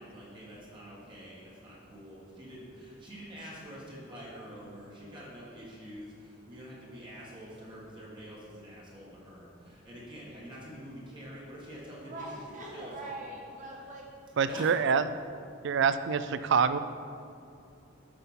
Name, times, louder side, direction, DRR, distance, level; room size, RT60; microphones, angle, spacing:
voice 1, 0.0-12.3 12.7-13.2 14.4-14.9, equal, 25° right, -6 dB, 1.8 m, -46 dB
voice 2, 11.9-14.1, right 1 dB, 40° right, -2 dB, 1.6 m, -42 dB
voice 3, 14.4-15.1 15.6-16.8, right 6 dB, 65° right, 12 dB, 0.4 m, -26 dB
7.8 x 5.8 x 5.7 m, 2.6 s
head